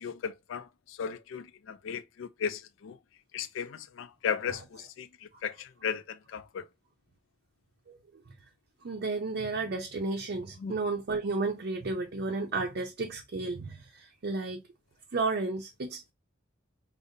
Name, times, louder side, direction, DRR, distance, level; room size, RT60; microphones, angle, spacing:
voice 1, 0.0-3.0 3.3-5.1 5.4-6.7 10.6-10.7, left 7 dB, 85° left, 0.4 m, -36 dB
voice 2, 8.8-14.6 15.1-16.1, right 3 dB, 55° right, 0.5 m, -32 dB
5.0 x 2.0 x 2.7 m
head